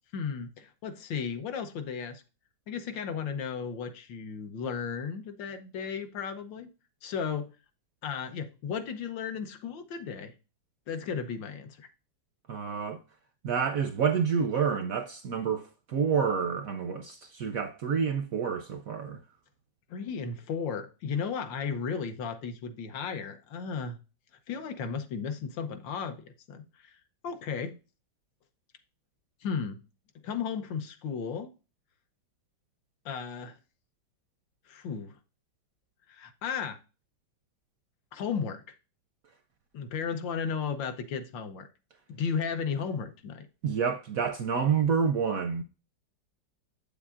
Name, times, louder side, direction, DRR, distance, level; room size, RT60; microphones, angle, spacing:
voice 1, 0.1-2.2 2.7-6.7 7.0-7.5 8.0-10.3 10.9-11.9 19.9-24.0 24.5-27.0 27.2-27.8 29.4-29.8 30.2-31.5 33.0-33.6 34.7-35.2 36.1-36.8 38.1-38.8 39.7-41.7 42.1-43.5, left 6 dB, 80° left, 1.5 m, -34 dB
voice 2, 12.5-13.0 13.4-19.2 43.6-45.6, right 6 dB, 70° right, 0.8 m, -28 dB
8.0 x 7.0 x 2.4 m
omnidirectional pair, 2.0 m